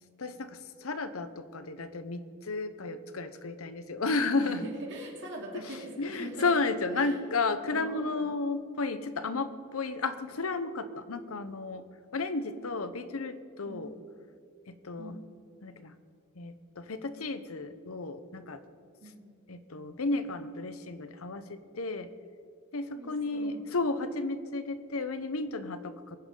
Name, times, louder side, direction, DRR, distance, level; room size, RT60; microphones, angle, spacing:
voice 1, 0.2-4.6 6.0-11.9 12.1-13.9 14.7-15.2 15.6-15.9 16.4-18.6 19.5-22.1 22.7-26.2, left 3 dB, 80° left, 11 dB, 0.9 m, -33 dB
voice 2, 4.4-6.6 6.9-8.3 13.7-13.9 15.0-15.2 19.0-19.3 22.9-23.6, right 1 dB, 60° right, -2 dB, 2.9 m, -43 dB
22.5 x 9.6 x 3.9 m, 2.3 s
head